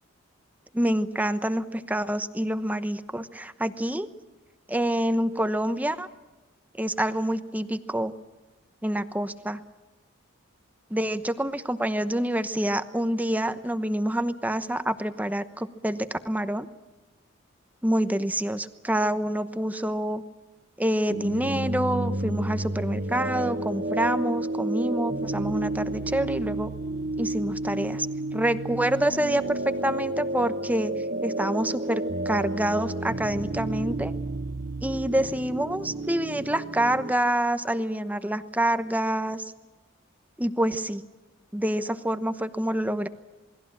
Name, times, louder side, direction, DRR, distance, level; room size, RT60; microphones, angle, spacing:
voice 1, 0.7-4.1 4.7-6.1 6.8-8.1 8.8-9.6 10.9-16.7 17.8-20.2 20.8-26.7 27.2-28.1 28.3-30.9 31.2-34.1 34.8-39.4 40.4-41.0 41.5-43.1, right 1 dB, 10° right, 10 dB, 1.0 m, -27 dB
sound 1, 21.1-37.1, right 2 dB, 45° right, 1.2 m, -31 dB
28.0 x 21.0 x 7.4 m, 1.1 s
head